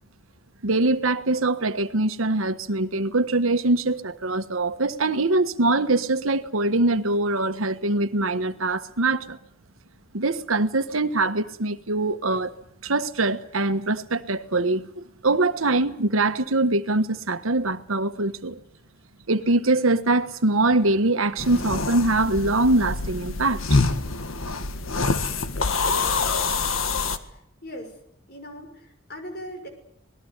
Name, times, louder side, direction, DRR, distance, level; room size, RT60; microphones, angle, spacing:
voice 1, 0.6-9.4 10.1-12.5 12.8-18.6 19.3-23.8, right 2 dB, 90° right, 1.4 m, -23 dB
sound 1, 21.4-27.2, left 3 dB, 85° left, 1.7 m, -25 dB
voice 2, 27.1-28.0 28.3-29.7, equal, 50° left, 6.0 m, -40 dB
26.5 x 20.0 x 8.2 m
head